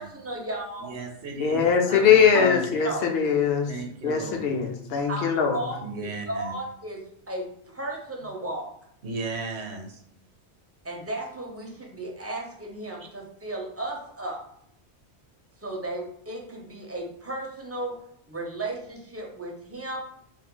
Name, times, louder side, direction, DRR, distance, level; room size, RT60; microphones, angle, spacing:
voice 1, 0.0-0.9 1.9-2.0 2.3-2.6 2.8-3.0 5.1-7.0 7.3-8.7 10.8-14.4 15.6-18.0 18.3-20.0, right 1 dB, 20° right, -1 dB, 0.4 m, -34 dB
voice 2, 0.8-2.7 3.7-4.4 5.8-6.5 9.0-10.0, right 2 dB, 70° right, 2 dB, 0.9 m, -35 dB
voice 3, 1.4-3.7 4.0-5.6, left 7 dB, 65° left, 4 dB, 0.7 m, -21 dB
2.6 x 2.5 x 3.7 m, 0.69 s
omnidirectional pair, 1.2 m